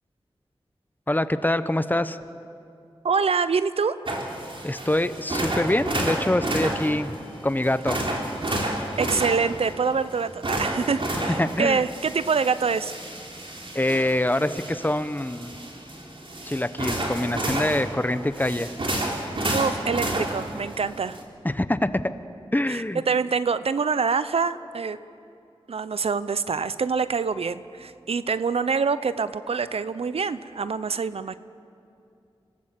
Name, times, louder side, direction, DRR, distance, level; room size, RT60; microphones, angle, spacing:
voice 1, 1.1-2.2 4.6-7.1 7.4-8.0 11.4-11.8 13.7-15.5 16.4-18.7 21.4-22.0 22.5-23.0, left 1 dB, 20° left, 12 dB, 0.9 m, -25 dB
voice 2, 3.0-4.0 9.0-13.0 19.5-21.2 22.7-25.0 25.7-31.4, right 5 dB, 80° right, 14 dB, 0.6 m, -25 dB
sound 1, 4.1-21.2, right 1 dB, 60° right, 3.6 m, -31 dB
26.0 x 17.5 x 7.7 m, 2.5 s
cardioid pair, 50°, 10 cm